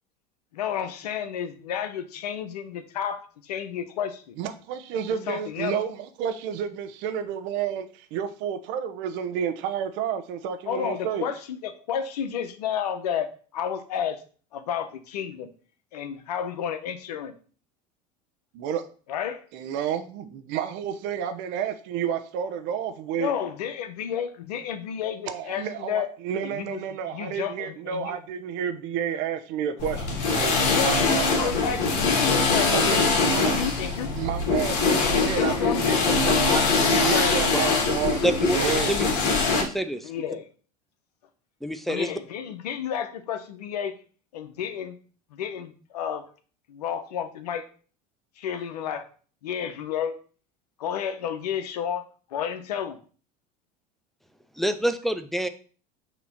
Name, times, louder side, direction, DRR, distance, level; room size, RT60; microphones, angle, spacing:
voice 1, 0.5-4.4 5.3-5.8 10.7-14.2 14.5-15.5 15.9-17.3 19.1-19.4 23.2-26.1 26.4-28.2 30.7-33.0 33.3-34.1 35.0-37.5 40.0-40.5 41.9-43.9 44.3-45.0 45.3-46.2 46.7-47.6 48.4-49.1 49.4-50.2 50.8-52.0 52.3-53.0, left 8 dB, 85° left, 10 dB, 0.8 m, -31 dB
voice 2, 4.4-11.3 18.5-18.8 19.5-23.3 25.3-31.5 32.7-33.6 34.2-38.2 38.5-39.0, right 8 dB, 65° right, 9 dB, 0.9 m, -30 dB
sound 1, 29.8-39.6, left 4 dB, 65° left, 1.6 m, -23 dB
voice 3, 38.2-38.6 38.9-39.1 39.6-40.1 41.6-42.1 54.6-55.5, right 1 dB, ahead, 9 dB, 0.6 m, -26 dB
5.9 x 3.0 x 5.6 m, 0.40 s
hypercardioid pair, 85°, 20 cm